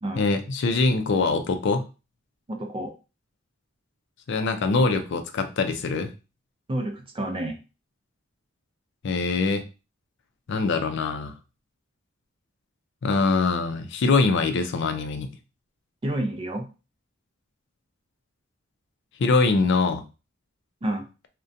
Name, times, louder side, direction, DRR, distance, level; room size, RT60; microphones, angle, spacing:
voice 1, 0.2-1.8 4.3-6.1 9.0-9.6 10.5-11.3 13.0-15.3 19.2-20.0, left 3 dB, 60° left, 8 dB, 0.4 m, -23 dB
voice 2, 2.5-2.9 6.7-7.6 16.0-16.7 20.8-21.1, right 1 dB, 25° right, 4 dB, 0.4 m, -29 dB
2.4 x 2.1 x 2.6 m, 0.31 s
head